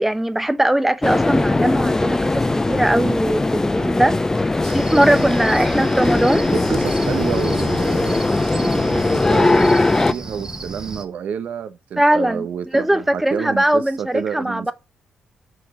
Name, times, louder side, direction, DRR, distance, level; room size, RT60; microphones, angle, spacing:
voice 1, 0.0-4.2 4.7-6.4 12.0-12.5 12.7-14.7, right 1 dB, 5° right, 1.0 m, -20 dB
sound 1, 1.0-10.1, left 2 dB, 20° left, 0.7 m, -19 dB
Cricket, 4.6-11.1, right 3 dB, 25° right, 1.5 m, -33 dB
voice 2, 4.9-5.3 5.6-5.7 6.5-8.2 8.5-9.8 10.1-14.7, right 8 dB, 70° right, 1.1 m, -29 dB
6.4 x 4.7 x 5.0 m
cardioid pair, 70°, 3 cm